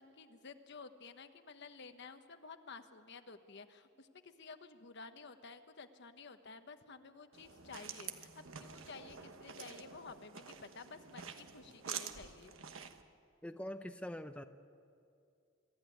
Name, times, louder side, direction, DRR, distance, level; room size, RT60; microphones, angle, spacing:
voice 1, 0.0-8.3 8.6-12.5, left 4 dB, 60° left, 8 dB, 1.1 m, -53 dB
sound 1, 7.3-13.0, right 7 dB, 85° right, 1.3 m, -48 dB
voice 2, 13.4-14.4, equal, 5° left, 7 dB, 0.6 m, -43 dB
25.0 x 14.0 x 9.5 m, 2.4 s
head